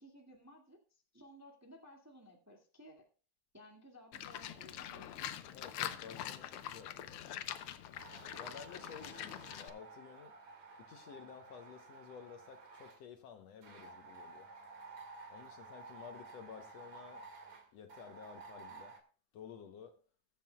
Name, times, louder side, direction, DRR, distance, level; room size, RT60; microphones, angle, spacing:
voice 1, 0.0-3.1 3.5-5.3, equal, 5° right, 1.4 m, -58 dB
Livestock farm animals working animals, 4.1-9.7, left 11 dB, 85° left, 1.2 m, -44 dB
voice 2, 5.5-7.4 8.4-10.3 10.9-14.5 15.3-17.3 17.7-19.0 19.3-20.0, left 7 dB, 65° left, 1.9 m, -53 dB
sound 1, 7.9-13.0 13.6-19.0, right 4 dB, 60° right, 3.2 m, -53 dB
21.0 x 7.6 x 2.3 m
omnidirectional pair, 3.4 m